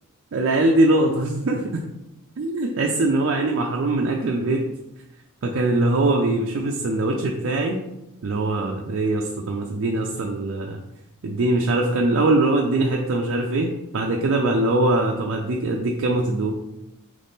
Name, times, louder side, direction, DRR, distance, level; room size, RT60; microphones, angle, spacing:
voice 1, 0.3-1.8 2.4-4.6 5.4-7.8 8.2-10.8 11.2-13.7 13.9-16.5, right 2 dB, 60° right, 1 dB, 0.4 m, -22 dB
4.0 x 3.2 x 3.5 m, 0.92 s
head